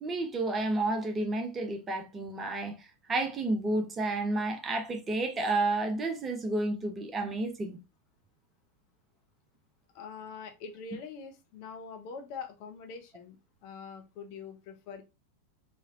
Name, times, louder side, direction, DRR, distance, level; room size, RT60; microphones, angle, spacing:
voice 1, 0.0-7.8, right 2 dB, 20° right, 0.6 m, -31 dB
voice 2, 9.9-13.4 13.6-15.0, left 5 dB, 45° left, 0.7 m, -44 dB
3.2 x 2.8 x 2.3 m
figure-of-eight pair, 90°, 0 cm